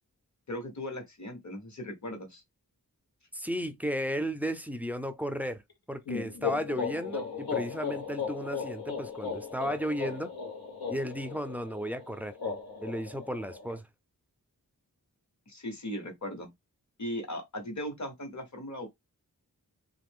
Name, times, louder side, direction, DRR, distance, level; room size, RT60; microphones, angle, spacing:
voice 1, 0.5-2.4 15.5-16.5 17.0-18.9, left 1 dB, 50° left, 1.2 m, -38 dB
voice 2, 3.3-5.6 5.9-10.3 10.9-12.4 12.8-13.9, equal, 5° right, 0.4 m, -34 dB
sound 1, 6.1-13.8, left 6 dB, 80° left, 1.0 m, -36 dB
2.9 x 2.5 x 3.5 m
wide cardioid pair, 75°, 36 cm